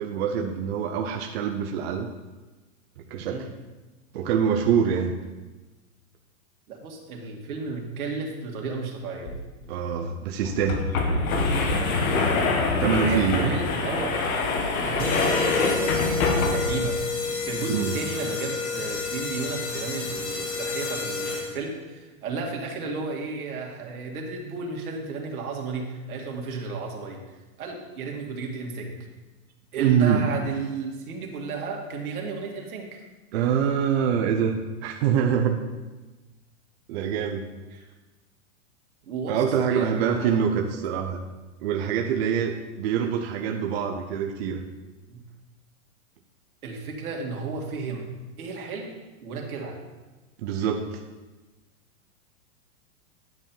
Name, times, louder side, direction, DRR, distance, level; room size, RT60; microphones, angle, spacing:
voice 1, 0.0-2.1 3.1-3.5 4.1-5.1 9.7-10.9 12.8-13.5 17.7-17.9 29.8-30.2 33.3-35.6 36.9-37.5 39.3-41.2 41.6-44.6 50.4-51.0, right 7 dB, 45° right, 3 dB, 0.7 m, -25 dB
voice 2, 6.7-9.3 12.9-14.2 14.6-17.0 17.4-27.2 27.6-29.0 29.7-33.0 37.7-37.9 39.1-39.4 39.7-40.5 45.1-45.2 46.6-48.1 48.4-48.9 49.2-49.8, right 4 dB, 80° right, 0 dB, 2.1 m, -33 dB
sound 1, 9.2-9.3 9.6-9.7 10.4-16.9, left 3 dB, 70° left, 1.5 m, -25 dB
sound 2, 15.0-21.8, left 4 dB, 50° left, 1.6 m, -30 dB
9.7 x 4.5 x 5.4 m, 1.2 s
hypercardioid pair, 150°, 43 cm